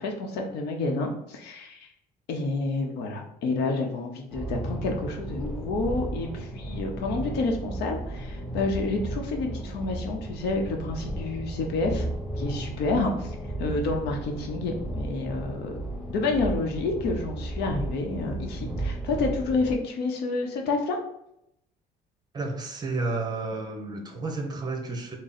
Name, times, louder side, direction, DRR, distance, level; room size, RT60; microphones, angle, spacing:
voice 1, 0.0-1.9 2.3-12.1 12.3-15.7 16.1-21.0, left 3 dB, 80° left, 2 dB, 0.7 m, -29 dB
sound 1, 4.3-19.7, right 1 dB, ahead, 0.9 m, -34 dB
voice 2, 22.3-25.2, right 3 dB, 25° right, 3 dB, 0.8 m, -31 dB
3.6 x 2.0 x 4.0 m, 0.79 s
cardioid pair, 110°, 17 cm